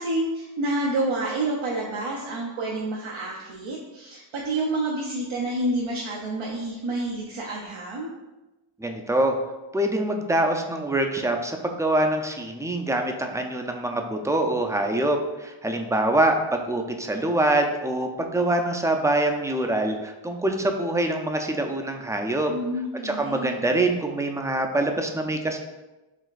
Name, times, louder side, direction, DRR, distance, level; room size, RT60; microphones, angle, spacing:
voice 1, 0.0-8.1 22.5-23.7, right 2 dB, 85° right, -4 dB, 0.6 m, -29 dB
voice 2, 8.8-9.4 9.7-22.5 23.0-25.6, right 1 dB, 5° right, 4 dB, 0.3 m, -24 dB
4.9 x 3.3 x 2.4 m, 1.1 s
wide cardioid pair, 60°, 48 cm